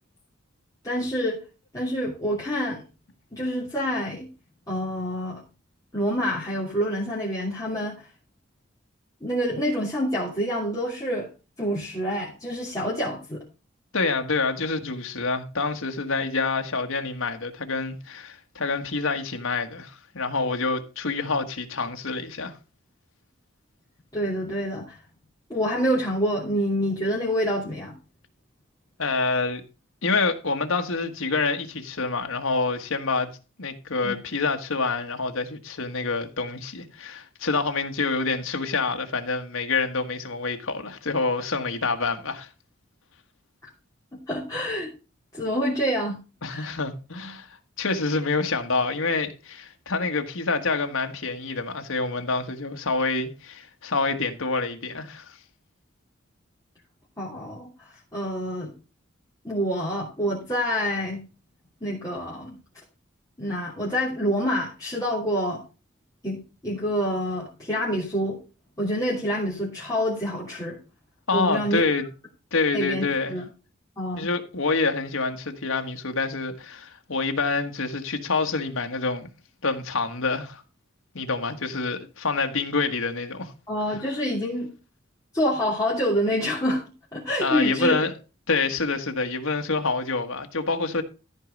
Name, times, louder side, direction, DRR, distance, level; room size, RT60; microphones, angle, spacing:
voice 1, 0.8-1.4 1.7-2.8 3.3-4.3 4.7-5.4 5.9-8.1 9.2-11.3 11.6-13.4 24.1-25.0 25.5-27.9 34.0-34.1 44.3-44.9 45.3-46.2 46.5-46.7 57.2-58.7 59.4-61.2 61.8-62.6 63.4-65.6 66.2-68.4 68.8-70.8 71.3-71.8 72.7-73.4 74.0-74.3 83.7-84.7 85.3-86.8 87.1-88.0, equal, 20° left, 2.9 m, -27 dB
voice 2, 13.9-22.6 29.0-29.6 30.0-33.3 33.6-42.5 46.4-55.4 71.3-72.1 72.5-73.4 74.2-79.3 79.6-80.6 81.1-83.5 87.4-88.1 88.5-91.0, left 4 dB, 90° left, 1.4 m, -27 dB
14.0 x 4.7 x 5.2 m
head